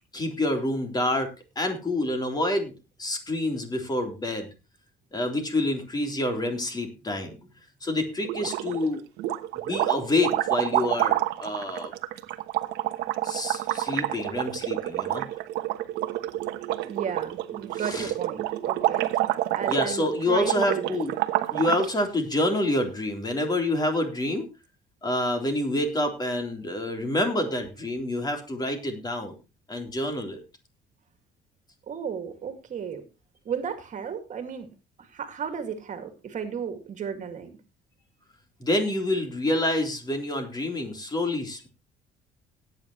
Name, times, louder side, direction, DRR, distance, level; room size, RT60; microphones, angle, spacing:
voice 1, 0.1-1.3 1.6-2.7 3.0-4.5 5.1-7.4 7.8-9.0 9.7-11.9 13.2-15.2 17.7-18.1 19.7-21.1 21.5-24.5 25.0-29.3 29.7-30.4 38.6-41.7, left 1 dB, 25° left, 4 dB, 3.7 m, -27 dB
sound 1, 8.3-8.9 9.2-21.9, right 15 dB, 90° right, 1.1 m, -28 dB
voice 2, 16.8-19.1 19.5-21.0 31.9-33.1 33.5-34.7 35.0-37.5, right 7 dB, 45° right, 7 dB, 2.2 m, -34 dB
17.5 x 9.2 x 3.1 m, 0.29 s
cardioid pair, 110°, 17 cm